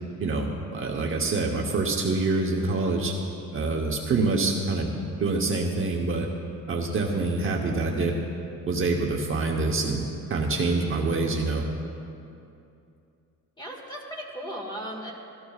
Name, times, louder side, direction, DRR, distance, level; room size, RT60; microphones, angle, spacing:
voice 1, 0.2-3.1 3.5-4.9 5.2-6.3 6.7-8.1 8.7-11.6, right 3 dB, 40° right, 0 dB, 1.0 m, -26 dB
voice 2, 13.6-15.1, equal, 15° left, -1 dB, 1.8 m, -36 dB
17.5 x 14.0 x 2.4 m, 2.6 s
cardioid pair, 160°, 32 cm